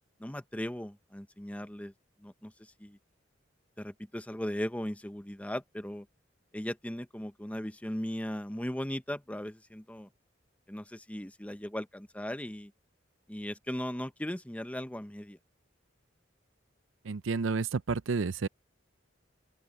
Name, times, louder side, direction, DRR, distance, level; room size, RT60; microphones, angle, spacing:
voice 1, 0.2-1.9 2.2-3.0 3.8-6.1 6.5-10.1 10.7-12.7 13.3-15.4, equal, 5° left, 0.8 m, -38 dB
voice 2, 17.0-18.5, right 4 dB, 85° right, 0.6 m, -30 dB
open air
head